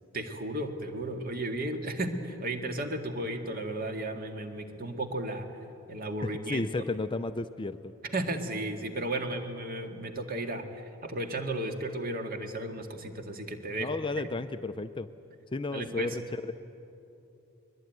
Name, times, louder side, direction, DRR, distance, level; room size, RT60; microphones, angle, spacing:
voice 1, 0.1-5.5 5.9-6.7 8.1-10.6 11.0-13.9 14.2-14.3 15.7-16.2, right 1 dB, 40° right, 5 dB, 2.0 m, -34 dB
voice 2, 6.2-7.9 13.8-15.1 15.5-16.2, left 3 dB, 20° left, 11 dB, 0.5 m, -33 dB
22.5 x 21.5 x 9.4 m, 2.9 s
head